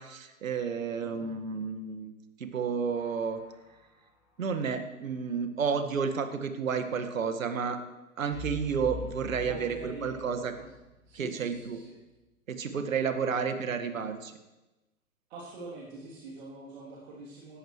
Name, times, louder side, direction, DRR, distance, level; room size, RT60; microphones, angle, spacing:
voice 1, 0.0-2.1 2.4-3.4 4.4-7.8 8.2-10.5 11.1-11.8 12.5-14.4, right 6 dB, 65° right, 8 dB, 1.8 m, -31 dB
sound 1, 2.9-3.8 8.3-11.3 11.5-11.7, left 3 dB, 10° right, 6.0 m, -45 dB
voice 2, 9.4-10.7 11.1-11.9 15.3-17.6, right 2 dB, 45° right, -5 dB, 3.2 m, -44 dB
18.5 x 13.5 x 3.2 m, 1.0 s
figure-of-eight pair, 125°, 44 cm